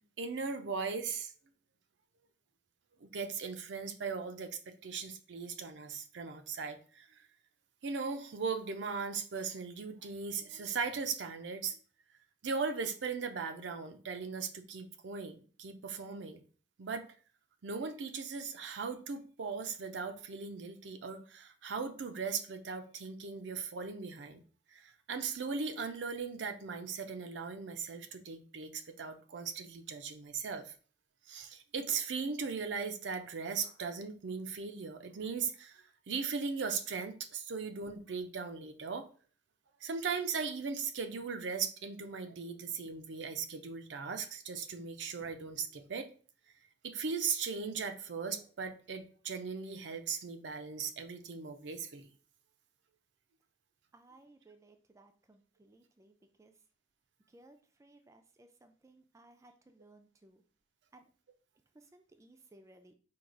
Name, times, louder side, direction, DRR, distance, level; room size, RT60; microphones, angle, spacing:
voice 1, 0.2-1.3 3.0-7.1 7.8-11.8 12.4-16.4 16.8-17.1 17.6-24.4 24.7-30.7 31.3-39.1 39.8-46.1 46.8-52.1, right 5 dB, 75° right, 7 dB, 0.5 m, -38 dB
voice 2, 53.9-56.6 57.3-60.4 60.9-61.1 61.7-62.9, right 2 dB, 15° right, 6 dB, 0.4 m, -61 dB
4.6 x 2.3 x 3.7 m, 0.41 s
head